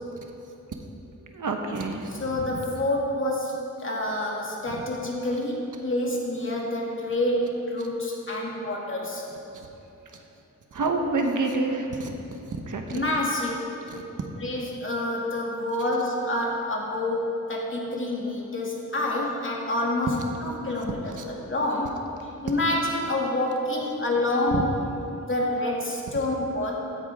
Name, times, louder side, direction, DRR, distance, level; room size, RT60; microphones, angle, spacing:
voice 1, 1.2-2.6 4.6-4.8 9.5-9.7 10.1-10.2 10.7-13.0 13.9-14.0 21.2-21.3, right 3 dB, 70° right, 3 dB, 1.2 m, -29 dB
voice 2, 2.2-9.2 12.9-13.8 14.4-20.1 20.4-21.0 21.3-24.7 25.2-26.7, left 1 dB, 40° left, -3 dB, 2.3 m, -27 dB
16.0 x 10.5 x 3.6 m, 2.8 s
wide cardioid pair, 105°, 32 cm